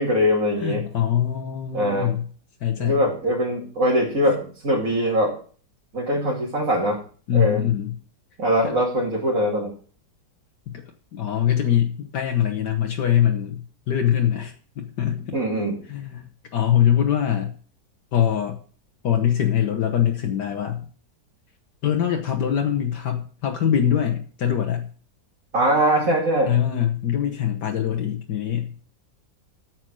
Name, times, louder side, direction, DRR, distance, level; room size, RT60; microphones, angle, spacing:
voice 1, 0.0-0.8 1.7-2.2 2.8-5.3 5.9-7.0 7.3-7.6 8.4-9.7 15.3-15.8 25.5-26.5, equal, 50° right, -4 dB, 2.9 m, -22 dB
voice 2, 0.6-2.2 2.6-3.0 7.3-7.9 8.6-8.7 10.7-10.8 11.1-15.4 15.9-17.5 18.1-18.6 19.0-20.8 21.8-24.9 26.5-28.7, left 10 dB, 70° left, 4 dB, 1.6 m, -23 dB
9.2 x 7.5 x 6.2 m, 0.42 s
omnidirectional pair, 1.9 m